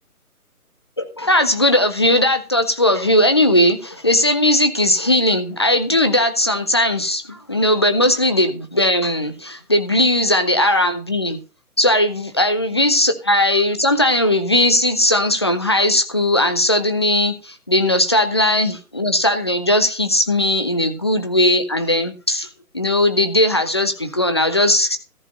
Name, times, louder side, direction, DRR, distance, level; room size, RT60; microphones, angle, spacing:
voice 1, 1.0-11.4 11.8-22.5 22.7-25.0, left 1 dB, 20° left, 8 dB, 0.5 m, -18 dB
14.0 x 4.9 x 6.4 m, 0.33 s
figure-of-eight pair, 140°, 45 cm